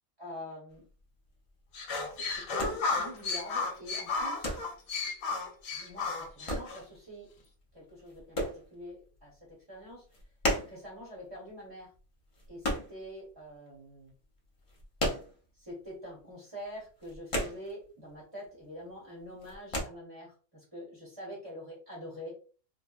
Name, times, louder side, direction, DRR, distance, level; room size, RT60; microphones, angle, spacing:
voice 1, 0.2-0.8 2.1-4.6 5.7-7.3 7.7-9.4 9.7-10.0 10.7-11.9 12.5-14.1 15.6-22.3, equal, 20° right, -4 dB, 0.8 m, -45 dB
sound 1, 0.7-13.7 13.9-15.9 16.1-16.3 16.6-18.2 18.4-18.9 19.2-19.8, equal, 35° left, 0.5 m, -36 dB
sound 2, 1.7-6.8, left 4 dB, 75° left, 1.0 m, -33 dB
3.4 x 2.2 x 2.3 m, 0.38 s
omnidirectional pair, 1.5 m